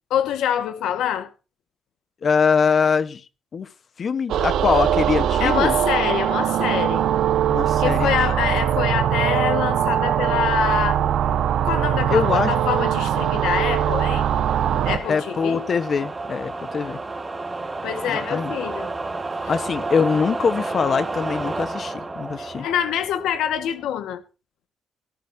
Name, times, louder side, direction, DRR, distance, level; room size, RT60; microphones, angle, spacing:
voice 1, 0.1-1.3 5.4-7.0 7.8-11.0 11.6-14.3 14.8-15.6 17.8-18.9 22.4-24.2, left 10 dB, 90° left, 1.8 m, -25 dB
voice 2, 2.2-3.2 3.5-3.7 4.0-5.8 7.5-8.1 12.1-12.5 15.1-17.0 18.1-18.5 19.5-22.7, left 6 dB, 40° left, 1.3 m, -23 dB
sound 1, 4.3-15.0, right 10 dB, 75° right, 1.5 m, -21 dB
sound 2, 7.4-23.9, right 3 dB, 15° right, 2.3 m, -33 dB
17.5 x 14.0 x 2.9 m
cardioid pair, 140°, 0 cm